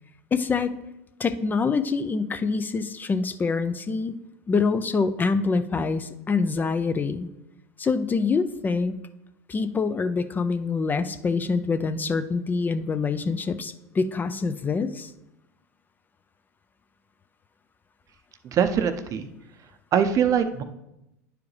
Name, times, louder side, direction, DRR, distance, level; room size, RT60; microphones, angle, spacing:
voice 1, 0.3-0.7 1.2-4.1 4.5-7.3 7.8-9.0 9.5-15.1, left 4 dB, 25° left, 10 dB, 0.5 m, -25 dB
voice 2, 18.5-19.3 19.9-20.6, right 8 dB, 45° right, 9 dB, 0.6 m, -22 dB
10.5 x 4.8 x 3.3 m, 0.91 s
hypercardioid pair, 90°, 8 cm